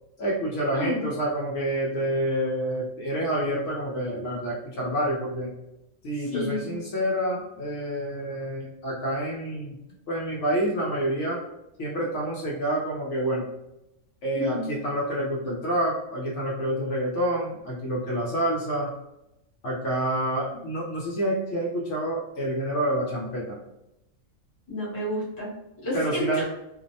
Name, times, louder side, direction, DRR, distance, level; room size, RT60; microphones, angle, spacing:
voice 1, 0.2-5.5 6.0-9.8 10.1-11.4 11.8-13.5 14.2-18.9 19.6-23.6 25.9-26.4, right 1 dB, 65° left, -4 dB, 0.9 m, -28 dB
voice 2, 0.7-1.1 6.2-6.7 14.3-14.7 20.5-20.6 24.7-26.4, left 1 dB, 20° left, -7 dB, 0.8 m, -31 dB
2.6 x 2.0 x 2.6 m, 0.88 s
omnidirectional pair, 1.4 m